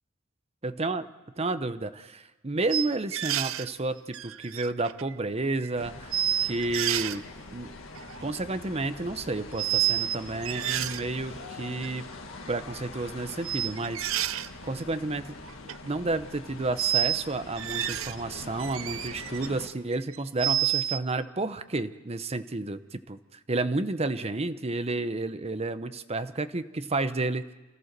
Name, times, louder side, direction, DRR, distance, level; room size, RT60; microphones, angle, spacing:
voice 1, 0.6-1.1 1.4-7.2 7.5-7.7 8.2-12.1 12.5-15.4 15.8-27.5, right 2 dB, 30° right, 11 dB, 0.8 m, -31 dB
sound 1, 2.7-3.7 4.1-5.1 5.6-5.7 6.1-7.2 7.9-8.3 9.6-10.2 10.4-11.0 11.8-11.9 13.4-14.5 15.4-15.8 16.8-17.2 17.6-18.2 18.6-19.5 19.9-21.0, right 13 dB, 70° right, 0.6 m, -29 dB
sound 2, 5.8-19.7, left 2 dB, 70° left, 1.8 m, -44 dB
28.0 x 14.5 x 6.8 m, 1.2 s
head